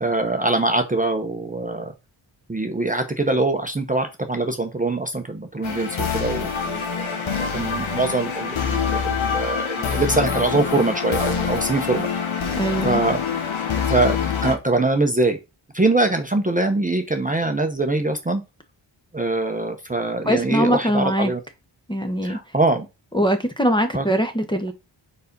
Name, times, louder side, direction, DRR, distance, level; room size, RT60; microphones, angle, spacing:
voice 1, 0.0-1.9 2.5-12.1 12.8-13.4 13.9-14.2 14.4-15.4 15.7-18.4 19.1-21.4 22.2-22.9 23.9-24.0, right 2 dB, 15° right, 0.8 m, -23 dB
sound 1, 5.6-14.6, left 6 dB, 75° left, 1.4 m, -25 dB
voice 2, 12.6-13.0 20.2-21.3 21.9-22.4 23.1-24.7, equal, 10° left, 0.9 m, -22 dB
4.7 x 4.1 x 5.2 m
wide cardioid pair, 115°, 47 cm